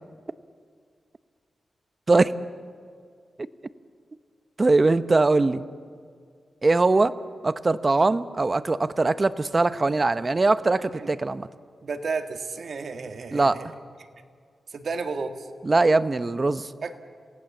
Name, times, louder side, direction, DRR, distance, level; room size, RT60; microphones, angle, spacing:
voice 1, 4.6-5.6 6.6-7.1 7.4-11.5 13.3-13.6 15.6-16.7, right 3 dB, 30° right, 13 dB, 0.8 m, -21 dB
voice 2, 11.8-13.7 14.7-15.5 16.8-16.9, right 4 dB, 65° right, 6 dB, 1.8 m, -32 dB
28.0 x 18.0 x 7.3 m, 2.1 s
cardioid pair, 90°, 0 cm